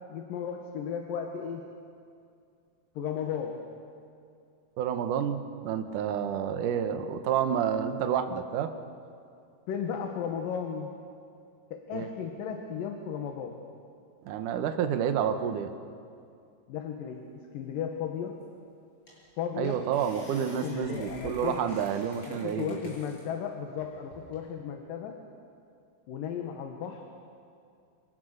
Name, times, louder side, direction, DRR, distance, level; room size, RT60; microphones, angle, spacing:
voice 1, 0.1-1.7 3.0-3.7 7.4-7.6 9.7-11.0 11.7-13.6 16.7-18.4 19.4-19.9 20.4-21.8 22.3-25.2 26.1-27.1, left 7 dB, 65° left, 3 dB, 2.9 m, -35 dB
voice 2, 4.8-8.7 11.9-12.1 14.3-15.7 19.6-22.8, right 8 dB, 65° right, 7 dB, 2.5 m, -29 dB
sound 1, 18.4-18.5 19.1-19.3 19.6-23.2 23.8-24.4, equal, 30° left, 8.6 m, -50 dB
27.5 x 27.0 x 6.7 m, 2.4 s
omnidirectional pair, 4.5 m